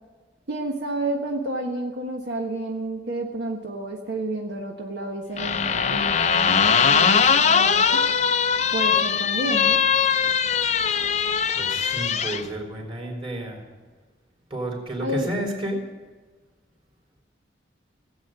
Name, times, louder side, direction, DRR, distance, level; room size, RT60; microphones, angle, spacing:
voice 1, 0.5-8.1 8.7-9.8 15.0-15.3, right 1 dB, 70° right, 1 dB, 1.4 m, -30 dB
sound 1, 5.4-12.4, left 6 dB, 40° left, 0.5 m, -21 dB
voice 2, 11.5-13.6 14.5-15.8, right 1 dB, 30° right, 0 dB, 3.4 m, -31 dB
17.5 x 8.7 x 7.6 m, 1.3 s
head